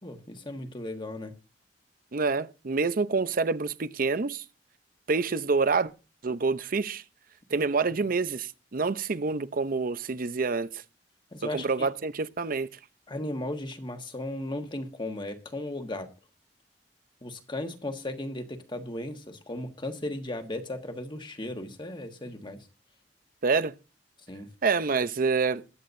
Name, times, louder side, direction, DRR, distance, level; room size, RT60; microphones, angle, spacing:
voice 1, 0.0-1.3 11.3-11.9 13.1-16.1 17.2-22.7 24.3-24.5, left 1 dB, 25° left, 1.5 m, -36 dB
voice 2, 2.1-4.4 5.1-5.9 6.2-7.0 7.5-10.8 11.5-12.7 23.4-23.7 24.6-25.6, right 4 dB, 50° right, 0.6 m, -27 dB
21.5 x 8.6 x 2.6 m
head